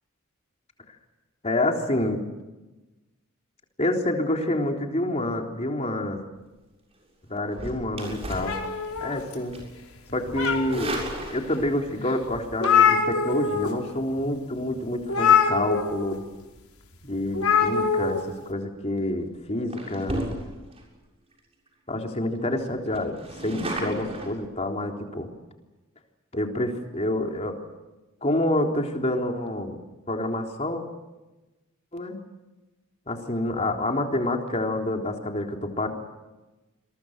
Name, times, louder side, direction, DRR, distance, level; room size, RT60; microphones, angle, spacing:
voice 1, 1.4-2.2 3.8-6.2 7.3-8.6 9.0-9.6 10.1-10.9 11.3-16.2 17.0-18.2 18.5-20.2 21.9-23.2 23.4-25.3 26.3-27.6 28.2-29.8 30.1-30.8 31.9-32.2 33.1-35.9, left 1 dB, 30° left, 2 dB, 3.6 m, -27 dB
sound 1, 7.5-9.2 9.5-9.8 10.4-11.8 13.1-13.4 18.4-18.7 19.2-19.3 19.7-20.8 21.3-21.4 21.7-21.8 22.1-22.2 22.5-24.3, right 1 dB, 30° right, 7.1 m, -34 dB
sound 2, 8.4-9.6 10.1-11.0 11.6-11.7 12.1-12.2 12.3-13.7 14.0-14.2 15.1-16.1 17.3-18.2, left 6 dB, 85° left, 4.9 m, -23 dB
28.5 x 23.0 x 6.7 m, 1.1 s
head